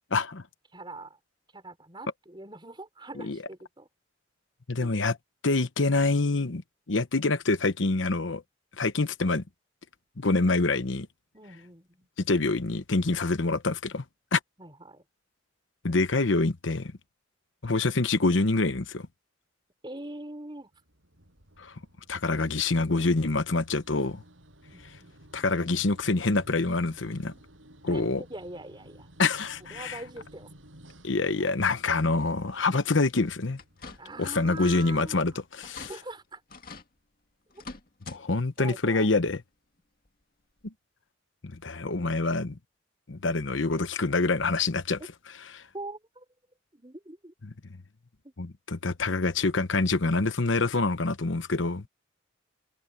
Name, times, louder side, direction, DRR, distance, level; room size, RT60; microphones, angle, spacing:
voice 1, 0.1-0.4 3.2-3.4 4.7-5.1 5.4-6.6 6.9-8.4 8.8-9.4 10.2-11.1 12.2-14.0 14.3-14.4 15.8-16.9 17.6-19.1 21.6-21.8 22.1-24.2 25.3-27.3 27.8-28.2 29.2-30.0 31.0-33.6 34.2-35.9 38.1-39.4 40.6-40.7 41.5-42.6 43.1-45.0 45.5-45.6 47.4-47.5 48.4-51.9, left 3 dB, 75° left, 1.1 m, -26 dB
voice 2, 0.7-1.2 1.5-3.9 4.8-5.0 11.3-12.1 14.6-15.0 19.8-20.7 24.7-25.2 27.9-29.1 29.7-30.5 31.4-31.5 33.9-35.4 35.6-36.4 37.5-37.6 38.3-39.1 45.7-46.3 46.7-47.3 48.2-48.3, right 2 dB, 25° right, 5.4 m, -43 dB
sound 1, 20.7-35.2, right 1 dB, 85° right, 7.9 m, -55 dB
sound 2, 33.6-34.2 34.6-35.0 35.3-35.4 35.6-35.9 36.5-36.9 37.5-38.2 38.6-38.7 40.1-40.2 40.7-40.8, left 4 dB, 45° left, 2.1 m, -45 dB
head